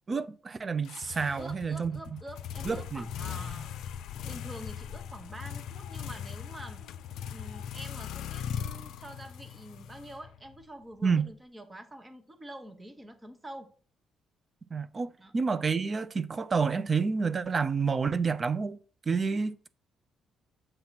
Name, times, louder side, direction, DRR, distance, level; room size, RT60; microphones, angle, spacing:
voice 1, 0.1-1.9 2.7-3.0 11.0-11.3 14.7-18.8 19.1-19.7, right 5 dB, 35° right, 0.4 m, -29 dB
sound 1, 0.8-10.6, left 8 dB, 80° left, 0.4 m, -39 dB
voice 2, 1.4-3.7 4.2-6.8 7.3-13.7 15.2-15.3, right 1 dB, 20° right, 1.0 m, -46 dB
7.8 x 2.9 x 5.8 m
cardioid pair, 90°, 0 cm